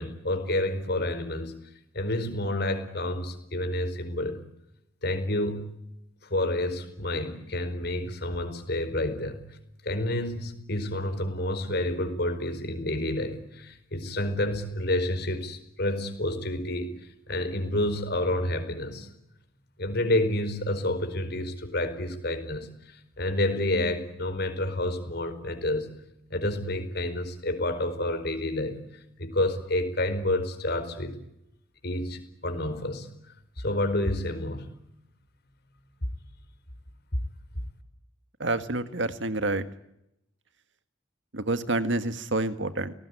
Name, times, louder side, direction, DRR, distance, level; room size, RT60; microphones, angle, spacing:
voice 1, 0.0-1.5 1.9-4.4 5.0-5.6 6.3-9.4 9.8-17.0 17.3-19.1 19.8-25.9 26.3-28.8 29.2-31.2 31.8-33.1 33.6-34.7 37.1-37.2, left 1 dB, 55° left, 9 dB, 4.8 m, -29 dB
voice 2, 38.4-39.6 41.3-42.9, right 2 dB, 65° right, 11 dB, 1.8 m, -28 dB
29.0 x 19.5 x 9.9 m, 0.82 s
head